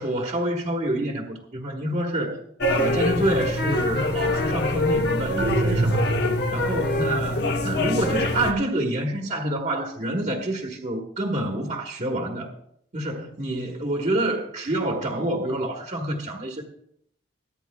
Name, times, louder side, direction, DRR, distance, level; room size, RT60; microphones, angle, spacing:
voice 1, 0.0-2.4 2.7-6.1 6.5-12.5 12.9-16.6, right 1 dB, 40° right, 1.3 m, -27 dB
sound 1, 2.6-8.5, left 2 dB, 55° left, 1.0 m, -24 dB
sound 2, 5.4-6.8, right 2 dB, 60° right, 0.7 m, -25 dB
23.5 x 9.3 x 2.3 m
head